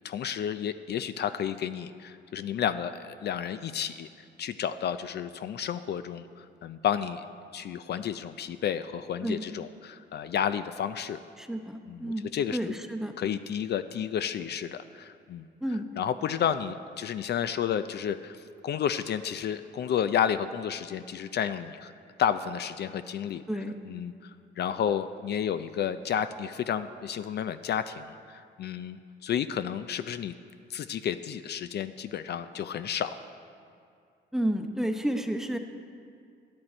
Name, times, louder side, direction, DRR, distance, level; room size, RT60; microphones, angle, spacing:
voice 1, 0.0-4.1 4.4-7.2 7.5-11.2 11.9-12.7 13.2-15.4 16.0-18.4 18.6-21.9 22.2-23.4 23.9-24.3 24.6-30.3 30.7-33.2, left 9 dB, 55° left, 12 dB, 0.4 m, -31 dB
voice 2, 11.4-13.1 15.6-15.8 23.5-23.7 34.3-35.6, right 1 dB, ahead, 5 dB, 0.8 m, -31 dB
12.0 x 10.5 x 4.3 m, 2.4 s
cardioid pair, 90°, 20 cm